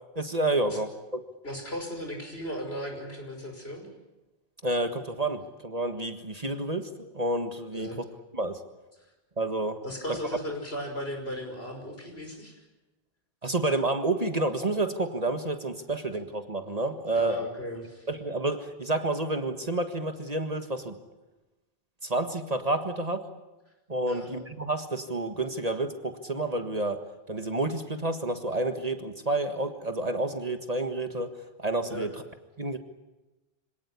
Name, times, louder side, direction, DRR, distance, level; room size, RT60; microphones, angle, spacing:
voice 1, 0.1-1.2 4.6-7.9 8.3-8.6 9.4-9.8 10.1-10.2 13.4-17.4 18.1-20.9 22.0-23.2 23.9-27.0 27.3-31.3 31.6-32.1 32.6-32.8, right 2 dB, 40° right, 7 dB, 1.7 m, -29 dB
voice 2, 1.4-3.9 7.7-8.0 9.8-12.6 17.1-18.1 24.1-24.3 31.9-32.1, equal, 70° left, 3 dB, 5.9 m, -36 dB
26.0 x 18.0 x 9.8 m, 1.1 s
omnidirectional pair, 1.1 m